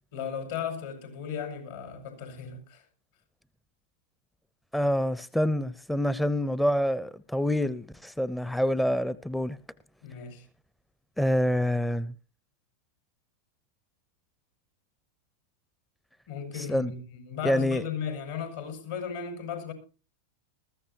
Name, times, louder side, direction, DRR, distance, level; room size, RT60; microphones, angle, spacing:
voice 1, 0.1-2.8 10.0-10.5 16.3-19.7, left 7 dB, 70° left, 5.8 m, -36 dB
voice 2, 4.7-9.6 11.2-12.1 16.5-16.9 17.4-17.8, equal, 5° left, 0.6 m, -26 dB
21.0 x 14.0 x 2.8 m
hypercardioid pair, 105°, 0 cm